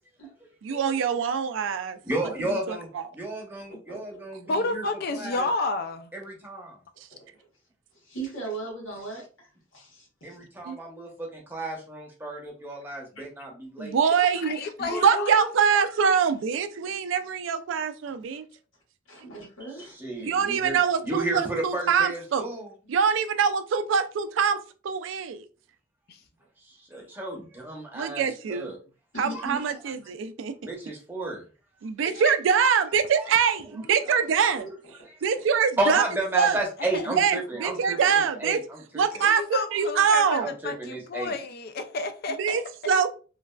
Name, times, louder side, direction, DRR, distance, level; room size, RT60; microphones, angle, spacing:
voice 1, 0.6-2.0 2.7-3.0 10.7-10.8 13.8-14.6 15.0-18.4 20.2-22.4 22.9-24.6 24.8-25.4 27.9-28.7 29.2-30.5 31.8-34.7 35.2-36.0 36.3-36.6 37.2-38.6 38.9-40.5 42.4-43.1, right 7 dB, 70° right, 0.3 m, -24 dB
voice 2, 2.0-2.9 3.1-4.8 5.1-5.5 6.1-6.8 10.2-14.0 19.9-20.8 21.0-22.7 26.9-28.8 29.3-29.5 30.6-31.4 34.1-34.2 34.6-34.7 35.0-35.1 35.8-39.1 40.3-41.3, right 2 dB, 10° right, 0.8 m, -32 dB
voice 3, 4.5-6.1 14.3-15.4 26.1-26.2 32.0-32.3 36.9-37.1 39.2-42.9, left 3 dB, 50° left, 0.4 m, -31 dB
voice 4, 8.1-10.4 14.8-15.8 19.1-20.3 29.1-29.6, right 1 dB, 85° left, 1.4 m, -36 dB
3.1 x 2.3 x 2.2 m
head